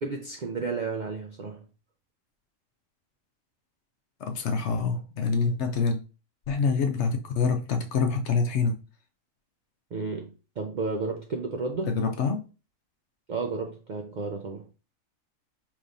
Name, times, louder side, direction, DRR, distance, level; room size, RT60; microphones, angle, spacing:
voice 1, 0.0-1.7 9.9-11.9 13.3-14.7, right 3 dB, 70° right, 0.4 m, -32 dB
voice 2, 4.2-6.0 6.5-8.8 11.9-12.4, left 5 dB, 65° left, 0.8 m, -26 dB
4.9 x 3.0 x 2.6 m
omnidirectional pair, 1.4 m